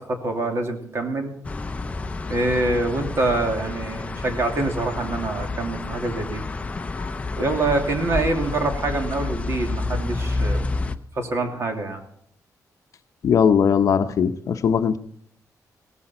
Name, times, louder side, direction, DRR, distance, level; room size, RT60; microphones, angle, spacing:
voice 1, 0.0-1.3 2.3-6.4 7.4-10.6 11.2-12.0, right 2 dB, 45° right, 3 dB, 2.7 m, -25 dB
sound 1, 1.4-11.0, left 3 dB, 20° left, 0.7 m, -29 dB
voice 2, 13.2-15.0, left 7 dB, 55° left, 9 dB, 0.8 m, -19 dB
17.5 x 14.0 x 4.3 m, 0.65 s
wide cardioid pair, 155°, 6 cm